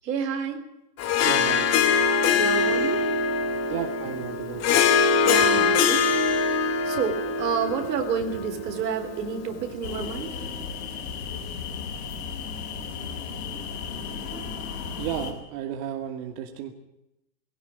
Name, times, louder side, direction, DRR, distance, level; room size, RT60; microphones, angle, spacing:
voice 1, 0.0-0.6 2.3-3.0 5.2-6.1 6.9-10.3, right 6 dB, 75° right, 7 dB, 3.7 m, -29 dB
Harp, 1.0-9.6, left 5 dB, 30° left, 2.3 m, -23 dB
voice 2, 1.2-1.7 3.7-4.8 15.0-16.7, right 9 dB, 45° right, 4 dB, 2.4 m, -33 dB
sound 1, 9.8-15.3, left 6 dB, 70° left, 6.5 m, -34 dB
20.0 x 17.0 x 8.8 m, 0.88 s
hypercardioid pair, 120°, 50 cm